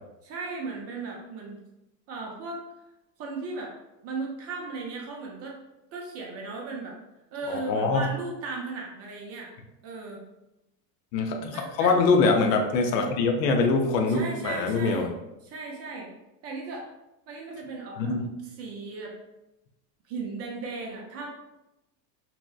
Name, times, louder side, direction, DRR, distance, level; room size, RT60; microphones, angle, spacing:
voice 1, 0.2-1.6 2.1-2.6 3.2-3.8 4.0-5.6 5.9-7.0 7.3-9.5 9.8-10.2 11.5-12.0 14.1-15.1 15.4-16.1 16.4-16.9 17.3-18.1 18.4-19.2 20.1-21.3, right 3 dB, 30° right, 0 dB, 0.4 m, -36 dB
voice 2, 7.5-8.0 11.1-15.1 18.0-18.3, left 3 dB, 75° left, 3 dB, 0.6 m, -23 dB
2.6 x 2.1 x 2.3 m, 0.94 s
hypercardioid pair, 95°, 49 cm